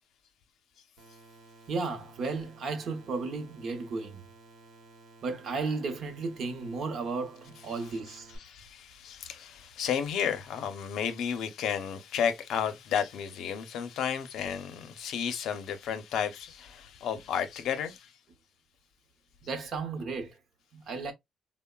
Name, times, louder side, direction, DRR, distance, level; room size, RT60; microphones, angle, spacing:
sound 1, 1.0-8.4, right 2 dB, 75° right, 0.9 m, -55 dB
voice 1, 1.7-4.2 5.2-8.3 19.4-20.4 20.7-21.1, right 4 dB, 50° right, 0.7 m, -34 dB
voice 2, 7.6-8.0 8.3-18.1, left 8 dB, 70° left, 0.6 m, -33 dB
3.7 x 2.0 x 2.2 m
cardioid pair, 165°, 0 cm